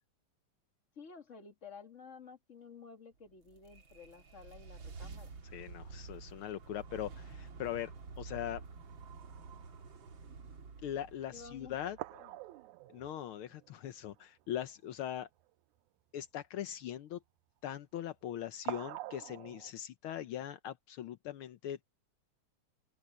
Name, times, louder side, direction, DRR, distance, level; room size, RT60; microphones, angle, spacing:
voice 1, 1.0-5.4 11.3-12.4, left 5 dB, 25° left, 1.9 m, -53 dB
sound 1, 3.3-12.5, right 4 dB, 45° right, 2.5 m, -50 dB
voice 2, 5.5-8.6 10.8-12.0 12.9-15.3 16.1-17.2 17.6-21.8, left 11 dB, 85° left, 1.2 m, -41 dB
sound 2, 10.9-11.0 11.5-11.6 12.0-14.3 14.6-14.7 15.0-15.2 18.7-19.7, right 17 dB, 80° right, 2.0 m, -45 dB
open air
omnidirectional pair, 3.5 m